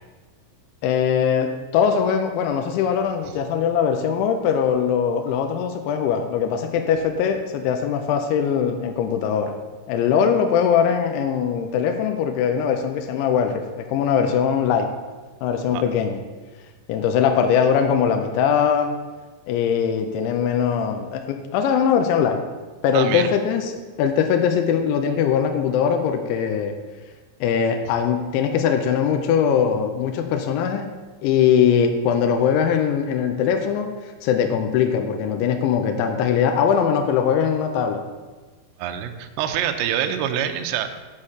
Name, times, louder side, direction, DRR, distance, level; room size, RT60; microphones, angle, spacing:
voice 1, 0.8-9.5 9.9-14.9 15.4-16.2 16.9-18.9 19.5-22.4 22.8-26.7 27.4-30.9 31.2-33.9 34.2-38.0, left 7 dB, 85° left, 5 dB, 2.7 m, -21 dB
voice 2, 22.9-23.3 38.8-40.9, right 10 dB, 90° right, 6 dB, 2.5 m, -25 dB
6.5 x 6.4 x 7.3 m, 1.3 s
omnidirectional pair, 5.9 m